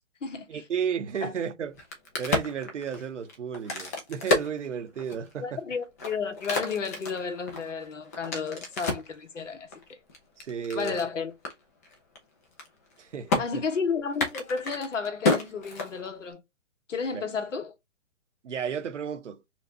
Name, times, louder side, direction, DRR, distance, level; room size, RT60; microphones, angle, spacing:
voice 1, 0.5-1.7 2.2-5.6 10.4-11.0 13.0-13.6 17.1-17.2 18.4-19.4, right 7 dB, 75° right, 0.9 m, -33 dB
Crack, 1.7-5.3 5.8-9.1 9.7-11.1 11.4-11.5 11.8-12.2 12.4-13.0 13.3-13.4 14.1-16.3, left 3 dB, 15° left, 0.4 m, -30 dB
voice 2, 5.4-10.0 10.7-11.3 13.4-16.4 16.9-17.7, left 5 dB, 80° left, 1.1 m, -32 dB
4.3 x 2.4 x 2.7 m
hypercardioid pair, 140°, 37 cm